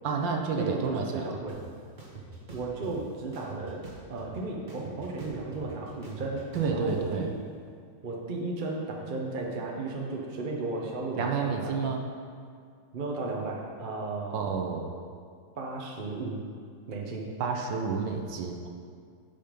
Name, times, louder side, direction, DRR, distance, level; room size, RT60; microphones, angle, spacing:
voice 1, 0.0-1.3 6.5-7.3 11.2-12.1 14.3-14.9 17.4-18.7, right 5 dB, 65° right, 3 dB, 1.4 m, -30 dB
voice 2, 0.6-1.6 2.5-7.4 8.0-11.7 12.9-14.4 15.6-16.4 16.9-17.3, right 3 dB, 50° right, -1 dB, 0.6 m, -34 dB
sound 1, 1.5-1.6 2.0-2.9 3.3-4.4 4.7-7.0, right 4 dB, 30° right, 1.1 m, -44 dB
11.0 x 5.4 x 5.2 m, 2.1 s
omnidirectional pair, 2.3 m